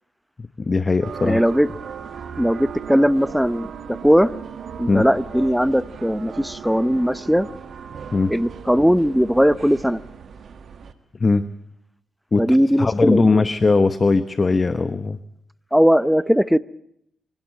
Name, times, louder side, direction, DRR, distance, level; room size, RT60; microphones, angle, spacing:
voice 1, 0.6-1.4 4.9-5.1 8.1-8.3 11.2-11.4 12.3-15.2, left 3 dB, 35° left, 13 dB, 1.0 m, -19 dB
sound 1, 1.0-10.9, right 7 dB, 60° right, 1.8 m, -37 dB
voice 2, 1.2-1.7 2.4-4.3 4.8-7.5 8.3-10.0 12.4-13.4 15.7-16.6, equal, ahead, 17 dB, 0.8 m, -18 dB
25.0 x 17.5 x 9.0 m, 0.74 s
cardioid pair, 70°, 0 cm